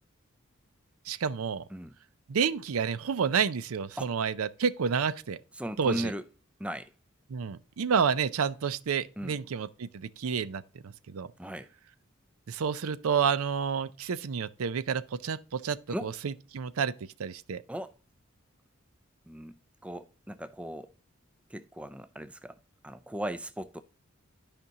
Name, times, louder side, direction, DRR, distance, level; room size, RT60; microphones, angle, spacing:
voice 1, 1.1-1.6 2.3-5.4 5.8-6.1 7.3-11.3 12.5-16.9 17.2-17.6, right 6 dB, 90° right, 0.5 m, -30 dB
voice 2, 5.5-6.2 6.6-6.9 9.2-9.4 11.4-11.7 15.9-16.1 17.7-17.9 19.3-19.6 19.8-20.9 21.5-22.6 22.8-23.8, equal, 5° right, 0.3 m, -37 dB
12.5 x 5.2 x 2.8 m
head